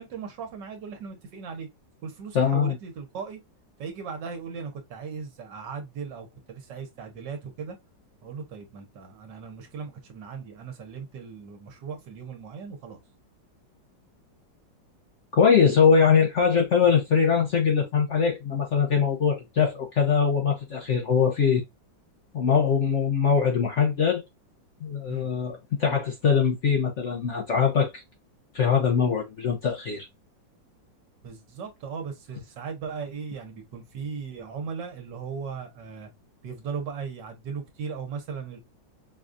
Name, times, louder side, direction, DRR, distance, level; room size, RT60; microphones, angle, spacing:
voice 1, 0.0-1.7 2.0-3.4 3.8-7.8 8.2-13.0 25.1-25.3 31.2-36.1 36.4-38.6, right 6 dB, 70° right, 1.5 m, -37 dB
voice 2, 2.3-2.8 15.3-21.6 22.3-24.2 24.8-28.0 28.5-30.1, left 6 dB, 55° left, 0.8 m, -22 dB
4.9 x 2.3 x 2.5 m
omnidirectional pair, 2.0 m